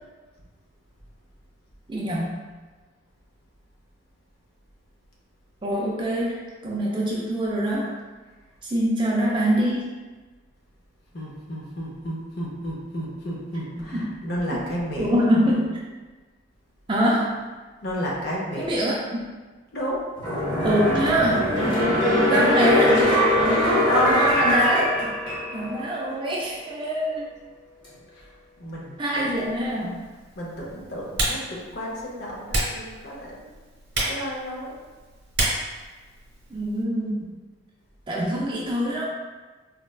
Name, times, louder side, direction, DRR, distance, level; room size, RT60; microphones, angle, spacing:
voice 1, 1.9-2.4 5.6-6.4 6.6-7.9 8.6-9.9 13.8-14.2 15.0-15.7 16.9-17.4 18.6-19.2 20.6-21.5 22.2-23.0 24.1-25.1 25.5-27.4 29.0-29.9 36.5-37.3 38.1-39.0, equal, 25° right, -4 dB, 0.4 m, -24 dB
voice 2, 11.1-15.2 17.8-18.8 19.7-20.1 23.6-24.3 28.1-29.4 30.3-33.5 33.9-34.7, equal, 50° left, -4 dB, 0.6 m, -31 dB
sound 1, 20.2-25.7 26.1-26.2, left 1 dB, 25° left, 0.9 m, -21 dB
Typing, 29.3-36.8, right 2 dB, 55° right, 0.9 m, -32 dB
4.0 x 2.1 x 2.2 m, 1.3 s
head